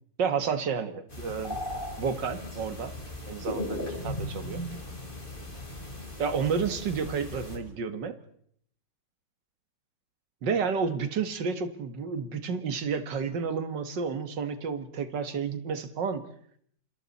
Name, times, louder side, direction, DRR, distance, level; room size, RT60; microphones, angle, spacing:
voice 1, 0.2-1.6 2.0-2.9 3.3-4.6 6.2-8.1 10.4-16.2, right 6 dB, 90° right, 11 dB, 2.2 m, -31 dB
sound 1, 1.1-7.6, left 1 dB, 30° left, 4.3 m, -37 dB
27.5 x 26.5 x 4.2 m, 0.65 s
omnidirectional pair, 1.9 m